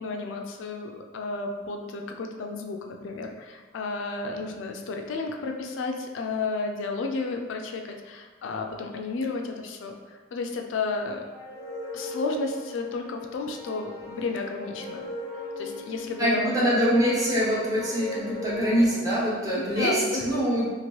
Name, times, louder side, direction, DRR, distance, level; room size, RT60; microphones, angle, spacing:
voice 1, 0.0-11.2 11.9-15.0 15.6-16.8 19.6-20.3, left 3 dB, 80° left, 3 dB, 0.3 m, -32 dB
sound 1, 11.3-19.4, left 1 dB, 20° left, 0.6 m, -38 dB
voice 2, 16.2-20.7, equal, 20° right, -7 dB, 0.8 m, -24 dB
2.9 x 2.5 x 3.0 m, 1.4 s
head